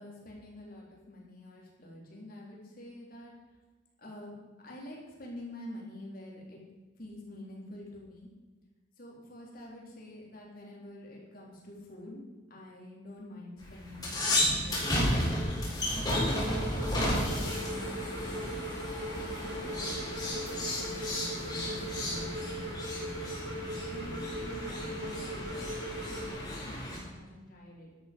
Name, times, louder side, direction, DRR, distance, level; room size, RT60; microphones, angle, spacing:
voice 1, 0.0-3.3 4.0-4.4 4.6-6.6 7.0-8.3 9.0-12.2 12.5-15.4 15.9-16.5 16.8-18.6 19.1-23.4 23.9-28.0, left 1 dB, 45° left, -3 dB, 4.0 m, -47 dB
sound 1, 13.6-27.0, left 1 dB, 20° left, 4.7 m, -33 dB
sound 2, 16.1-26.3, right 1 dB, 65° right, 1.9 m, -40 dB
12.0 x 12.0 x 5.4 m, 1.3 s
head